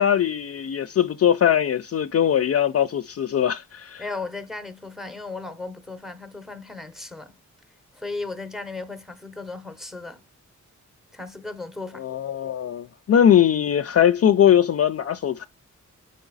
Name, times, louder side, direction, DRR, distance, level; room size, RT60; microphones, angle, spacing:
voice 1, 0.0-4.0 12.0-15.5, left 9 dB, 50° left, 0.4 m, -20 dB
voice 2, 4.0-7.4 7.9-10.2 11.1-12.1, left 3 dB, ahead, 0.7 m, -35 dB
5.3 x 4.8 x 3.9 m
wide cardioid pair, 135°, 31 cm